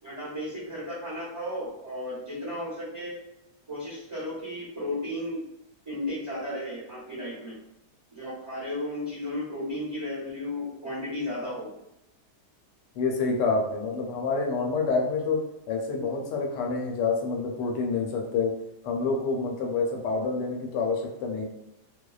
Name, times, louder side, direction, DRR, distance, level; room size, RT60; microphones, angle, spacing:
voice 1, 0.0-3.2 3.7-5.4 5.9-7.5 8.1-11.7, left 1 dB, 30° right, -9 dB, 0.6 m, -34 dB
voice 2, 12.9-18.6 18.8-21.5, left 4 dB, 85° left, 1 dB, 1.2 m, -27 dB
2.7 x 2.1 x 2.3 m, 0.87 s
omnidirectional pair, 1.8 m